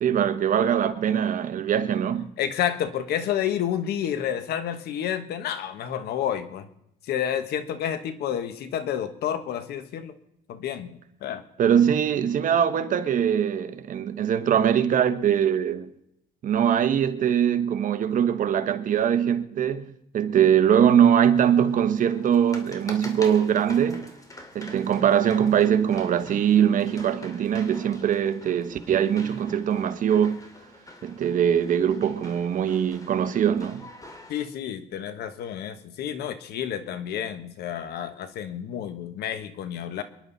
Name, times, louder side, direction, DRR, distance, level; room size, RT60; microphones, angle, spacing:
voice 1, 0.0-2.3 11.6-15.9 16.4-24.1 24.5-30.5 31.0-33.9, right 9 dB, 50° right, 1.3 m, -22 dB
voice 2, 2.4-6.7 7.1-10.1 10.5-11.4 34.3-40.0, left 9 dB, 70° left, 1.4 m, -30 dB
sound 1, 21.4-34.5, left 1 dB, 20° left, 2.6 m, -46 dB
28.0 x 11.0 x 4.1 m
cardioid pair, 110°, 17 cm